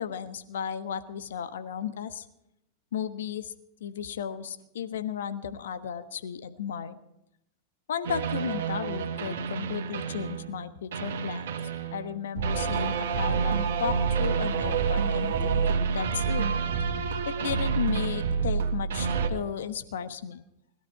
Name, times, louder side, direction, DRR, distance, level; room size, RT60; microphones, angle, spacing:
voice 1, 0.0-2.3 2.9-3.5 3.8-7.0 7.9-11.5 11.9-16.4 17.2-20.4, left 8 dB, 65° left, 11 dB, 1.2 m, -34 dB
sound 1, 8.0-10.6 10.9-19.3, right 6 dB, 65° right, 1.9 m, -28 dB
20.5 x 12.5 x 4.7 m, 0.83 s
figure-of-eight pair, 90°, 0 cm